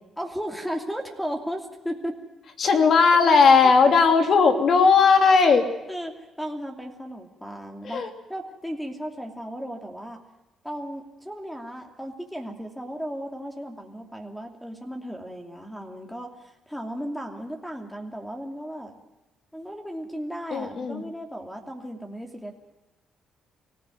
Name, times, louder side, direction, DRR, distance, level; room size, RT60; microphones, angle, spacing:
voice 1, 0.2-2.2 3.6-3.7 5.9-10.2 10.6-19.0 19.5-22.6, equal, 5° left, 3 dB, 2.8 m, -35 dB
voice 2, 2.6-5.7 7.8-8.1 20.5-21.0, left 5 dB, 55° left, 6 dB, 3.0 m, -17 dB
24.5 x 16.0 x 9.4 m, 1.0 s
cardioid pair, 90°, 0 cm